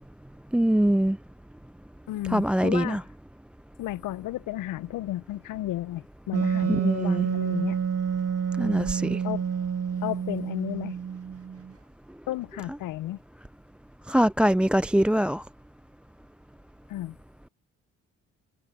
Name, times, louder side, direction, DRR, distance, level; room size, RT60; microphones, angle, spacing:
voice 1, 0.5-1.2 2.3-3.0 6.8-7.3 8.6-9.2 14.1-15.4, right 1 dB, 5° right, 0.4 m, -23 dB
voice 2, 2.1-3.0 3.8-7.8 9.2-9.4 10.0-11.0 12.3-13.2 16.9-17.2, left 15 dB, 70° left, 0.9 m, -33 dB
Wind instrument woodwind instrument, 6.3-11.7, right 7 dB, 45° right, 2.2 m, -28 dB
hypercardioid pair, 50°, 34 cm